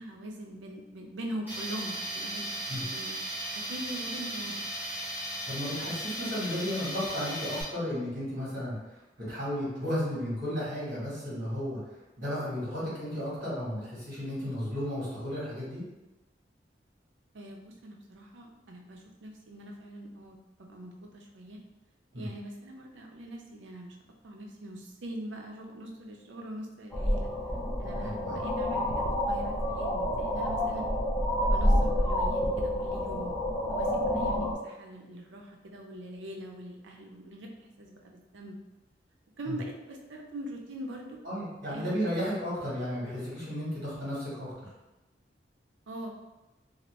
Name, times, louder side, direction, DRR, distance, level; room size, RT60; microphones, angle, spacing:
voice 1, 0.0-2.5 2.8-3.1 3.5-4.7 17.3-21.6 22.2-24.0 24.2-27.3 27.8-30.8 31.4-33.3 33.7-38.6 39.4-41.2 41.7-41.9 45.9-46.1, right 1 dB, 85° right, 1 dB, 0.6 m, -42 dB
Tools, 1.5-7.6, right 1 dB, 10° right, 1.1 m, -36 dB
voice 2, 5.4-8.7 9.2-11.8 12.2-15.8 22.1-22.3 27.9-28.4 39.4-39.6 41.2-44.7, equal, 50° right, -8 dB, 1.4 m, -34 dB
sound 1, 26.9-34.5, equal, 10° left, 0.5 m, -28 dB
2.9 x 2.5 x 3.1 m, 1.0 s
head